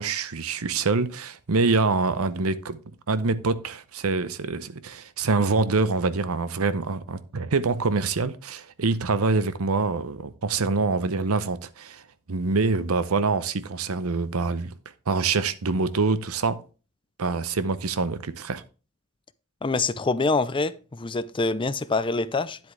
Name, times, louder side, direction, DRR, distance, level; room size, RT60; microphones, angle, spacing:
voice 1, 0.0-2.8 3.1-12.0 12.3-14.7 15.1-16.6 17.2-18.6, right 4 dB, 70° right, 0.8 m, -25 dB
voice 2, 19.6-22.6, left 3 dB, 25° left, 0.5 m, -25 dB
9.7 x 8.0 x 3.3 m
head